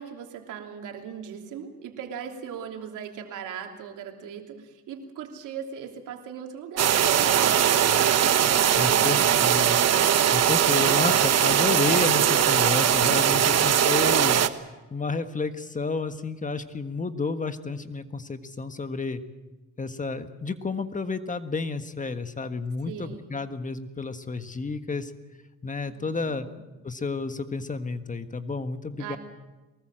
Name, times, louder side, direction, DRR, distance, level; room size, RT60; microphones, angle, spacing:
voice 1, 0.0-9.5 9.8-10.1 22.9-23.3 25.8-26.6 29.0-29.2, right 7 dB, 85° right, 3 dB, 3.2 m, -39 dB
sound 1, 6.8-14.5, right 9 dB, 55° right, 1.2 m, -21 dB
voice 2, 8.7-9.8 10.3-14.4 14.9-19.2 19.8-25.1 25.6-26.5 26.8-29.2, left 4 dB, 25° left, 9 dB, 1.5 m, -31 dB
23.5 x 20.0 x 7.7 m, 1.1 s
cardioid pair, 90°, 30 cm